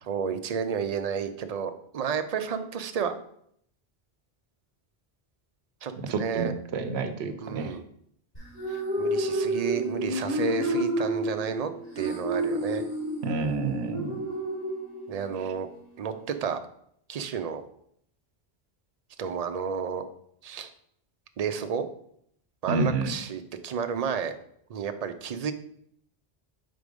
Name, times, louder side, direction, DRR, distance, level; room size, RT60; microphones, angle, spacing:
voice 1, 0.0-3.1 5.8-6.5 7.4-7.8 8.7-11.7 12.0-12.9 15.1-15.7 16.0-16.6 17.1-17.6 19.2-20.0 20.4-20.7 21.4-21.9 22.6-24.3 24.7-25.5, right 7 dB, 50° right, 8 dB, 0.5 m, -31 dB
voice 2, 6.1-7.8 13.2-14.2 22.7-23.1, right 3 dB, 90° right, 8 dB, 1.0 m, -29 dB
sound 1, 8.3-15.4, right 1 dB, 45° left, 3.1 m, -30 dB
4.8 x 4.2 x 5.2 m, 0.69 s
omnidirectional pair, 1.1 m